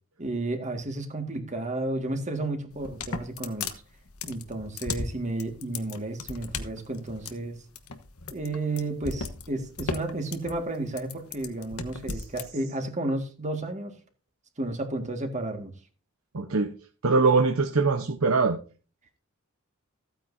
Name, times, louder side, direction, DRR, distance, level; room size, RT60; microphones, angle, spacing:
voice 1, 0.2-3.8 4.3-7.6 8.3-13.9 14.6-15.7, right 2 dB, 35° right, 5 dB, 1.9 m, -32 dB
sound 1, 2.7-12.5, left 4 dB, 85° left, 1.2 m, -36 dB
voice 2, 16.3-16.7 17.0-18.6, right 4 dB, 80° right, 5 dB, 0.9 m, -22 dB
15.0 x 9.1 x 2.7 m, 0.36 s
head